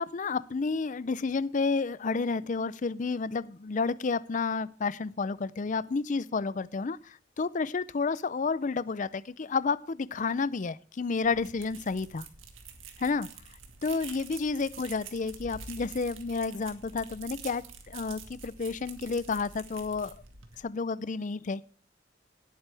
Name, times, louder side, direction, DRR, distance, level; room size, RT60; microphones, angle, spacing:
voice 1, 0.0-12.3 13.0-13.3 13.8-20.1 20.6-21.6, left 4 dB, 40° left, 18 dB, 0.5 m, -31 dB
sound 1, 11.2-20.6, right 5 dB, 80° right, 1.9 m, -47 dB
18.0 x 9.0 x 3.4 m, 0.42 s
head